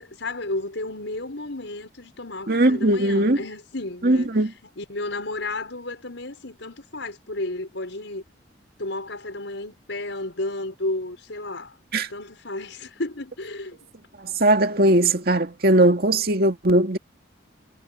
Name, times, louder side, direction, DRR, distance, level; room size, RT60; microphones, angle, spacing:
voice 1, 0.0-4.4 4.8-8.2 8.8-11.7 12.1-13.8, left 2 dB, 80° left, 5.4 m, -32 dB
voice 2, 2.5-3.4 4.0-4.5 11.9-12.1 14.2-17.0, right 1 dB, 55° right, 2.2 m, -19 dB
head